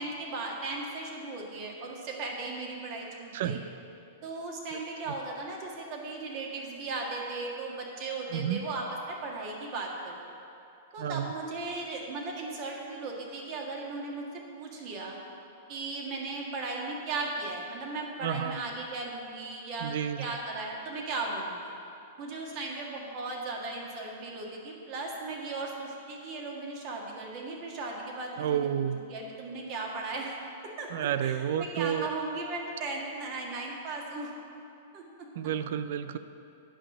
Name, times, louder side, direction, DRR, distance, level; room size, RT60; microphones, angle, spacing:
voice 1, 0.0-3.6 4.2-10.3 10.9-14.2 14.5-15.2 15.7-21.7 22.2-30.4 30.8-34.3 34.9-35.3, right 3 dB, 45° right, -1 dB, 1.7 m, -37 dB
voice 2, 8.3-8.6 11.0-11.3 18.2-18.6 19.8-20.3 28.4-29.0 30.9-32.1 35.4-36.2, right 9 dB, 65° right, 12 dB, 0.4 m, -30 dB
8.9 x 5.7 x 6.1 m, 2.7 s
hypercardioid pair, 115°, 0 cm